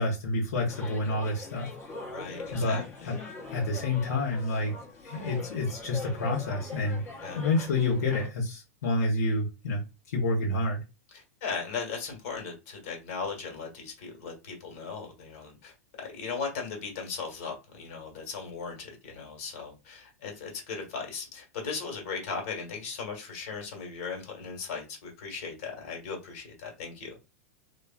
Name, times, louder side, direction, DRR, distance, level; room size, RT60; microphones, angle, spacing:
voice 1, 0.0-1.7 2.5-2.8 3.0-3.2 3.5-4.7 5.0-7.0 7.4-9.8 10.1-10.8, left 2 dB, 85° left, 0.9 m, -28 dB
sound 1, 0.7-8.3, left 3 dB, 30° left, 0.9 m, -42 dB
voice 2, 2.1-3.1 7.2-7.4 11.1-27.2, left 5 dB, 60° left, 1.3 m, -37 dB
3.1 x 2.1 x 2.3 m
hypercardioid pair, 130°, 8 cm